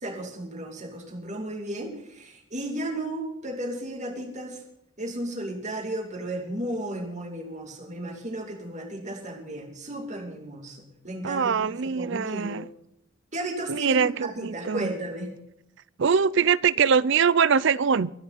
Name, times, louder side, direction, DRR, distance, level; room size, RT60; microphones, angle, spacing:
voice 1, 0.0-4.6 5.0-12.6 13.3-15.3, right 1 dB, 35° right, 3 dB, 2.6 m, -34 dB
voice 2, 11.2-12.7 13.7-14.9 16.0-18.1, right 6 dB, 60° right, 20 dB, 0.5 m, -23 dB
24.0 x 9.8 x 4.1 m, 0.80 s
head